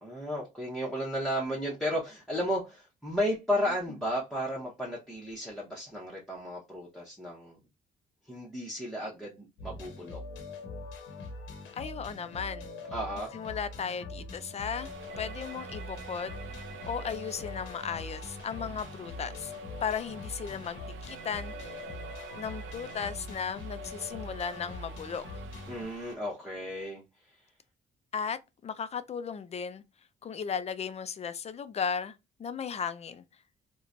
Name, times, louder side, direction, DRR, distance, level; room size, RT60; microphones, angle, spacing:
voice 1, 0.0-7.6 8.3-10.2 12.9-13.3 25.7-27.4, equal, ahead, 0.8 m, -34 dB
sound 1, 9.6-25.8, left 2 dB, 80° left, 0.8 m, -43 dB
voice 2, 11.7-12.7 13.3-14.9 15.2-16.6 16.9-19.5 19.8-21.8 22.3-25.3 28.1-29.8 30.2-33.2, left 6 dB, 35° left, 0.4 m, -36 dB
sound 2, 14.8-26.2, right 6 dB, 80° right, 0.5 m, -48 dB
3.1 x 2.1 x 2.5 m
cardioid pair, 90°, 20 cm